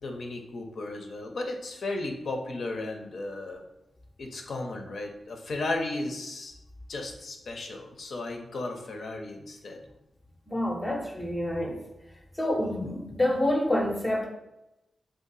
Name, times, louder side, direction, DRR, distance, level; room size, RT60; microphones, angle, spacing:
voice 1, 0.0-3.6 4.2-6.5 6.9-9.8, left 2 dB, 70° left, 2 dB, 0.5 m, -35 dB
voice 2, 10.5-11.8 12.4-14.3, left 1 dB, 15° left, 0 dB, 0.5 m, -27 dB
2.7 x 2.4 x 3.9 m, 0.92 s
cardioid pair, 60°, 0 cm